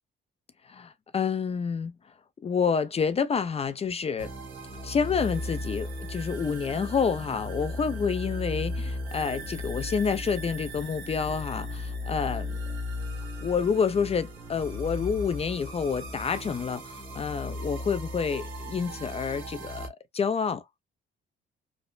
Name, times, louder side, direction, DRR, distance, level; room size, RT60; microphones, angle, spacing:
voice 1, 0.7-1.9 2.4-4.3 4.8-12.6 13.4-20.6, left 6 dB, 30° left, 0.4 m, -28 dB
sound 1, 4.2-19.9, left 1 dB, 85° right, 1.1 m, -36 dB
3.1 x 2.0 x 2.3 m
cardioid pair, 90°, 20 cm